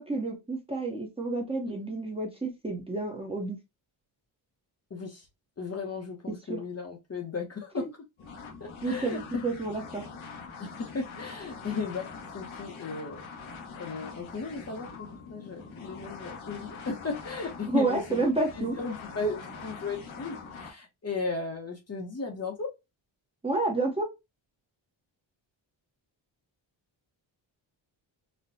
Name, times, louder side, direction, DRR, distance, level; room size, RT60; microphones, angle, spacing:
voice 1, 0.0-3.6 6.3-6.6 7.8-7.9 8.8-10.1 17.7-18.8 23.4-24.1, right 2 dB, 10° right, 0.7 m, -30 dB
voice 2, 4.9-5.2 5.6-7.9 8.6-9.2 10.6-13.2 13.8-18.2 18.6-22.7, left 3 dB, 30° left, 0.8 m, -36 dB
sound 1, 8.2-20.7, left 5 dB, 80° left, 1.1 m, -44 dB
4.2 x 2.1 x 2.6 m
wide cardioid pair, 150°, 47 cm